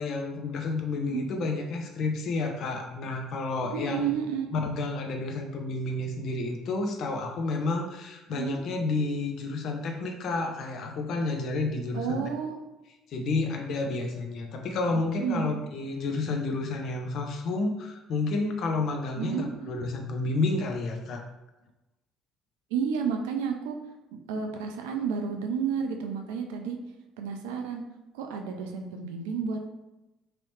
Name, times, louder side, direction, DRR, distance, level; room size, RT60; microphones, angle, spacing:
voice 1, 0.0-4.1 4.5-12.2 13.1-21.2, left 3 dB, 55° left, 4 dB, 0.5 m, -30 dB
voice 2, 3.7-4.5 8.3-8.6 11.9-12.6 15.2-15.5 19.2-19.7 22.7-23.8 24.3-26.8 27.2-27.8 28.1-29.7, right 6 dB, 70° right, 4 dB, 0.4 m, -31 dB
3.0 x 2.9 x 3.1 m, 1.0 s
figure-of-eight pair, 55°, 0 cm